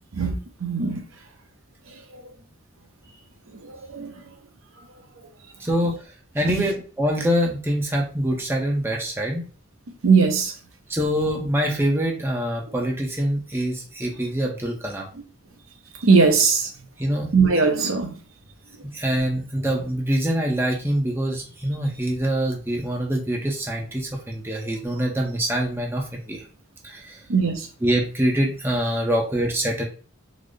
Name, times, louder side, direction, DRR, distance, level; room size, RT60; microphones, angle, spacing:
voice 1, 0.1-1.0 2.1-2.2 3.6-4.1 6.4-6.7 10.0-10.5 16.0-16.7 17.3-18.1 27.3-27.7, right 5 dB, 75° right, 0.7 m, -20 dB
voice 2, 5.6-6.0 6.3-9.4 10.9-15.1 17.0-17.3 18.8-26.4 26.8-27.2 27.8-29.9, equal, 10° right, 0.6 m, -24 dB
3.8 x 2.1 x 3.2 m
head